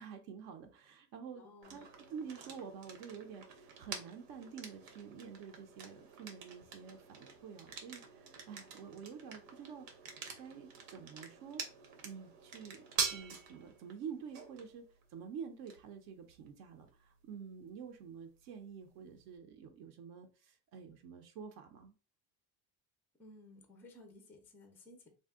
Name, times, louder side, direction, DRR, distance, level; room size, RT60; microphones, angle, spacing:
voice 1, 0.0-11.6 12.0-21.9, right 6 dB, 60° right, 5 dB, 0.5 m, -49 dB
voice 2, 1.4-1.9 23.2-25.1, left 2 dB, 5° left, 4 dB, 0.3 m, -57 dB
sound 1, 1.6-19.4, right 6 dB, 85° right, 0.9 m, -46 dB
2.6 x 2.1 x 3.5 m, 0.34 s
cardioid pair, 150°, 38 cm